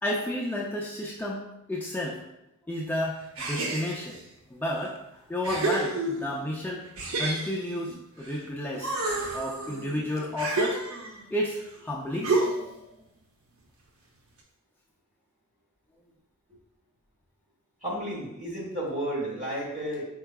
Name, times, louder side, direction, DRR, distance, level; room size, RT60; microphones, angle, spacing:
voice 1, 0.0-2.2 2.7-4.2 4.5-5.0 5.3-6.8 7.2-9.0 9.3-10.8 11.3-12.5, left 1 dB, 10° left, -4 dB, 0.4 m, -31 dB
sound 1, 3.4-4.2 4.9-5.0 5.4-6.5 7.0-8.4 8.7-11.3 12.2-12.8, right 2 dB, 70° right, 0.7 m, -30 dB
voice 2, 17.8-20.0, right 1 dB, 35° right, -3 dB, 1.3 m, -32 dB
4.6 x 4.5 x 2.2 m, 0.85 s
head